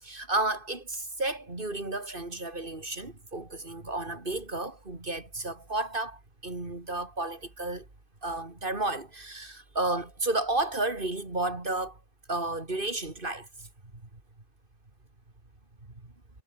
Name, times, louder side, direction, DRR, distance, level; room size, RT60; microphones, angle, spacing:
voice 1, 0.0-7.9 8.2-12.0 12.3-13.7, right 2 dB, 45° right, 3.6 m, -32 dB
omnidirectional pair, 1.3 m